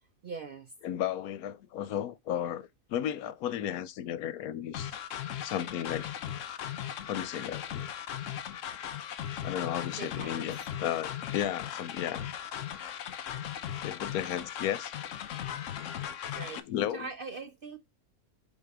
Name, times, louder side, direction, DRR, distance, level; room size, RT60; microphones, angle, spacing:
voice 1, 0.2-0.7 10.0-10.5 16.4-16.6 16.9-17.8, right 4 dB, 55° right, 0.6 m, -41 dB
voice 2, 0.8-4.9 5.4-6.1 7.1-7.9 9.4-12.3 13.8-14.9 16.6-17.1, left 10 dB, 85° left, 1.1 m, -34 dB
sound 1, 4.7-16.6, left 10 dB, 65° left, 1.0 m, -38 dB
5.4 x 4.3 x 4.7 m
omnidirectional pair, 1.5 m